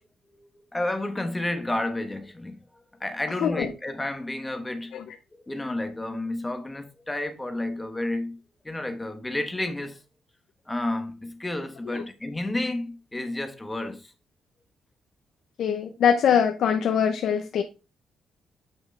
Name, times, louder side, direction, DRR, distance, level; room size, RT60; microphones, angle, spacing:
voice 1, 0.7-2.6 3.0-4.9 5.5-8.4 8.6-10.0 10.7-14.0, left 1 dB, 10° left, 1.1 m, -31 dB
voice 2, 3.4-3.7 4.9-5.1 11.9-12.0 15.6-17.6, left 8 dB, 70° left, 0.7 m, -23 dB
7.8 x 5.8 x 3.3 m
cardioid pair, 140°, 0 cm